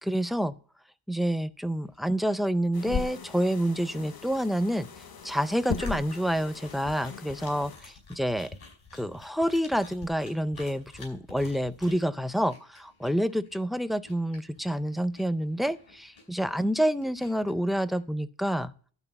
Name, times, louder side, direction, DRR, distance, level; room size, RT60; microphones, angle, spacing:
voice 1, 0.0-0.5 1.1-4.9 5.2-8.5 9.0-18.7, equal, ahead, 14 dB, 0.4 m, -28 dB
sound 1, 1.9-18.0, left 3 dB, 85° left, 4.7 m, -51 dB
sound 2, 2.7-7.8, left 5 dB, 50° left, 0.9 m, -37 dB
12.0 x 4.6 x 6.8 m, 0.43 s
wide cardioid pair, 140°, 48 cm